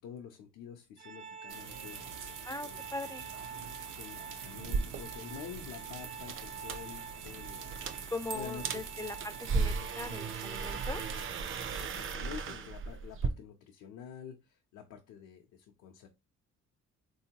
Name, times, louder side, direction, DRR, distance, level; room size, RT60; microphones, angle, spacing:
voice 1, 0.0-2.8 4.0-8.8 11.8-16.1, left 8 dB, 85° left, 0.7 m, -48 dB
Organ, 1.0-11.7, right 6 dB, 65° right, 1.2 m, -47 dB
Rain and Thunder, 1.5-12.1, right 7 dB, 85° right, 0.7 m, -46 dB
voice 2, 2.4-3.2 8.1-11.2, left 2 dB, 10° left, 0.3 m, -40 dB
sound 1, 4.6-13.3, right 4 dB, 45° right, 0.5 m, -37 dB
3.6 x 2.8 x 2.8 m
cardioid pair, 90°, 30 cm